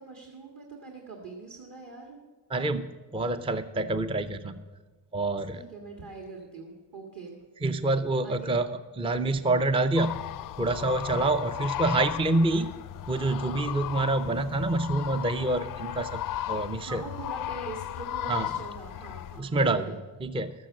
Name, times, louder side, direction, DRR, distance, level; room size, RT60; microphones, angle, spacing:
voice 1, 0.0-2.2 3.3-3.5 5.5-7.4 8.2-8.5 16.8-20.0, right 3 dB, 45° right, 0 dB, 2.1 m, -43 dB
voice 2, 2.5-4.6 5.1-5.6 7.6-8.7 9.0-10.2 10.6-12.7 13.1-16.2 16.5-17.0 18.3-18.5 19.4-20.5, right 2 dB, 10° right, 11 dB, 0.5 m, -27 dB
sound 1, 10.0-19.4, left 13 dB, 45° left, 0.4 m, -36 dB
13.0 x 7.7 x 7.5 m, 1.3 s
cardioid pair, 85°, 46 cm